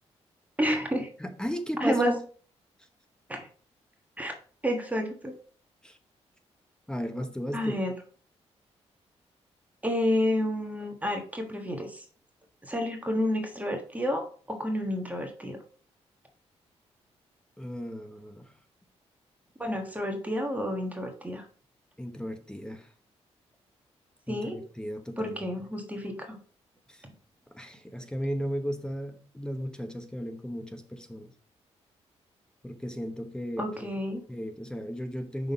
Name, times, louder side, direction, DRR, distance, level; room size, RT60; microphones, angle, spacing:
voice 1, 0.6-1.1 1.8-2.1 3.3-3.5 4.2-4.3 4.6-5.3 7.5-7.9 9.8-12.0 12.6-15.6 19.6-21.4 24.3-24.6 25.2-26.4 33.6-34.2, equal, 15° right, 3 dB, 1.4 m, -30 dB
voice 2, 1.2-2.2 5.8-6.0 6.9-7.8 17.6-18.5 22.0-22.9 24.3-25.4 26.9-27.0 27.5-31.3 32.6-33.9 34.3-35.5, equal, 5° left, 7 dB, 0.9 m, -35 dB
5.7 x 3.8 x 5.2 m, 0.42 s
cardioid pair, 80°, 11 cm